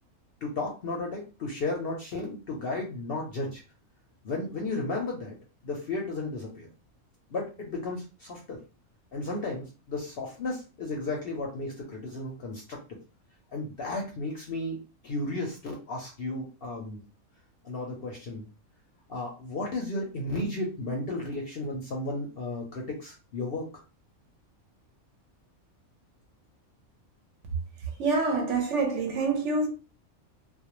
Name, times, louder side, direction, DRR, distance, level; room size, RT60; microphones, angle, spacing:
voice 1, 0.4-3.6 4.2-5.4 5.6-6.7 7.3-8.6 9.1-12.8 13.5-17.0 17.6-18.4 19.1-23.7, left 2 dB, 60° left, 0.6 m, -34 dB
voice 2, 27.5-29.7, right 3 dB, 70° right, 0.8 m, -27 dB
2.3 x 2.1 x 2.9 m
omnidirectional pair, 1.4 m